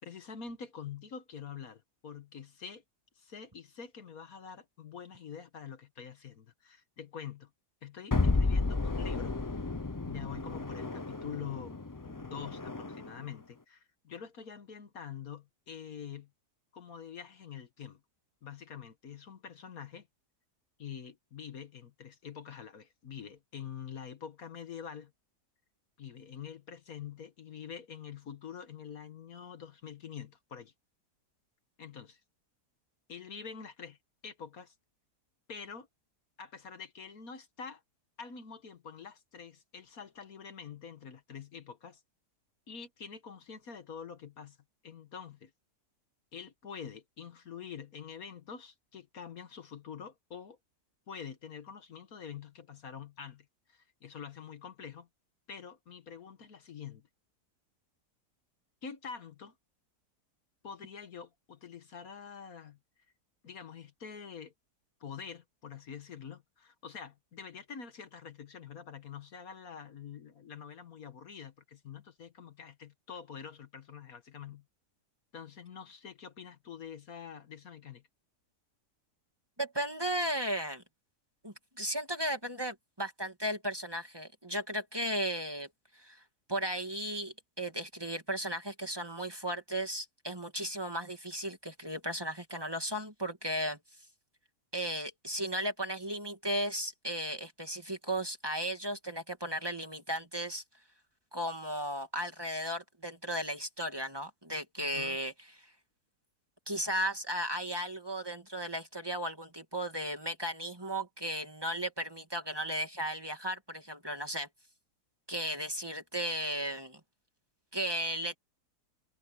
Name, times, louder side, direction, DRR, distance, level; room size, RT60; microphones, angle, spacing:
voice 1, 0.0-2.8 3.2-7.5 7.8-9.4 10.1-16.3 16.7-18.0 18.4-20.1 20.8-25.1 26.0-30.7 31.8-32.2 33.1-34.0 34.2-34.8 35.5-35.9 36.4-37.8 38.2-42.0 42.7-44.6 44.8-45.5 46.3-50.6 51.1-55.1 55.5-57.1 58.8-59.6 60.6-62.8 63.4-64.5 65.0-74.6 75.3-78.0 104.8-105.2, left 7 dB, 65° left, 1.7 m, -46 dB
sound 1, 8.1-13.2, left 3 dB, 30° left, 0.3 m, -32 dB
voice 2, 79.6-80.8 81.4-85.7 85.9-86.2 86.5-93.8 94.7-100.6 101.3-105.3 105.6-105.7 106.7-114.5 115.3-117.0 117.7-118.4, right 1 dB, 15° right, 2.2 m, -35 dB
omnidirectional pair, 1.7 m